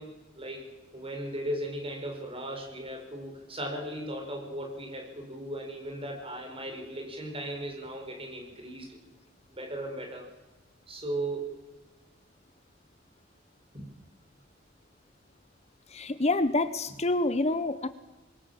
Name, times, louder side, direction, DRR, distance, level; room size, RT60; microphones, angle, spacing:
voice 1, 0.0-9.0 9.5-10.3 10.9-11.7 13.7-13.9, right 1 dB, 30° right, 2 dB, 6.7 m, -37 dB
voice 2, 15.9-17.9, left 2 dB, 35° left, 12 dB, 1.0 m, -27 dB
26.0 x 22.0 x 7.7 m, 1.1 s
head